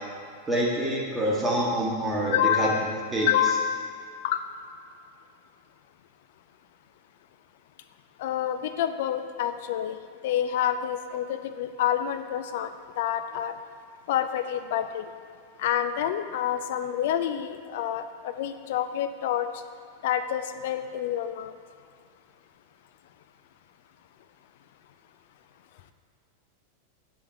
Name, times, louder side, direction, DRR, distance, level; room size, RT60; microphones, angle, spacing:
voice 1, 0.5-2.7 3.1-3.3, right 1 dB, 10° right, -5 dB, 1.1 m, -26 dB
voice 2, 2.3-2.9 3.3-3.9 4.2-4.4 8.2-10.0 10.2-12.7 13.0-13.5 14.1-15.1 15.6-19.5 20.0-21.5, left 10 dB, 55° left, 9 dB, 0.3 m, -28 dB
5.6 x 4.1 x 4.7 m, 2.2 s
figure-of-eight pair, 90°, 0 cm